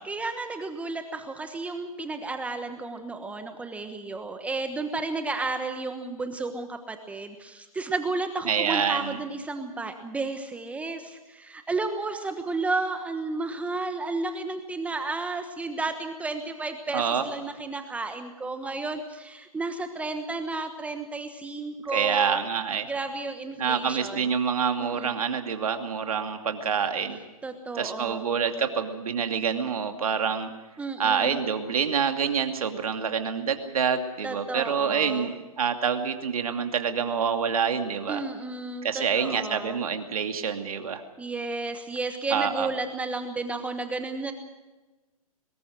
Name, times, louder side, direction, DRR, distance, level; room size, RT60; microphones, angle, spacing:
voice 1, 0.0-22.4 22.8-24.4 24.8-25.2 27.4-28.2 30.8-31.4 34.2-35.3 38.1-39.8 41.2-44.3, right 3 dB, 5° right, 7 dB, 1.2 m, -32 dB
voice 2, 8.5-9.2 16.9-17.2 21.9-22.9 23.6-27.2 27.7-30.5 31.0-38.2 38.8-41.0 42.3-42.7, right 6 dB, 70° right, 6 dB, 2.6 m, -27 dB
24.0 x 20.5 x 6.3 m, 1.1 s
hypercardioid pair, 135°, 19 cm